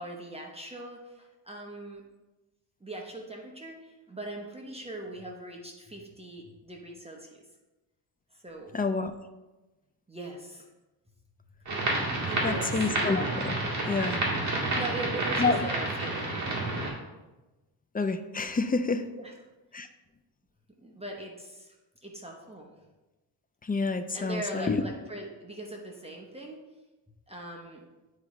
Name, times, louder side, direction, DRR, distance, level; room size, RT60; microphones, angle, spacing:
voice 1, 0.0-2.0 2.8-7.3 8.4-8.8 10.1-10.7 12.3-12.9 14.7-16.4 19.1-19.3 20.8-21.8 22.0-22.7 24.1-26.6 27.3-27.8, right 2 dB, 15° right, 0 dB, 0.9 m, -40 dB
voice 2, 8.7-9.1 12.4-14.2 15.4-15.6 17.9-19.0 19.7-19.9 23.6-24.8, left 4 dB, 20° left, 9 dB, 0.3 m, -28 dB
sound 1, 11.7-16.9, right 2 dB, 40° right, 2.2 m, -29 dB
9.7 x 4.8 x 3.1 m, 1.1 s
wide cardioid pair, 125°, 44 cm